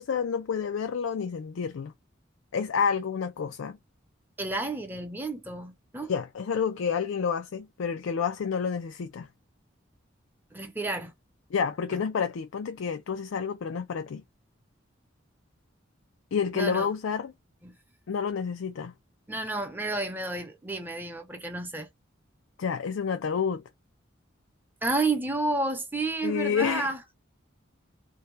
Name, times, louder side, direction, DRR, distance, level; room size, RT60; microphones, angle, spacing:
voice 1, 0.0-1.9 2.5-3.8 6.1-9.3 11.5-14.2 16.3-17.3 18.1-18.9 22.6-23.6 26.2-26.9, left 6 dB, 90° left, 0.4 m, -29 dB
voice 2, 4.4-6.1 10.5-11.1 11.9-12.0 16.5-16.9 17.6-17.8 19.3-21.9 24.8-27.0, right 2 dB, 10° right, 0.6 m, -31 dB
2.7 x 2.2 x 3.1 m
head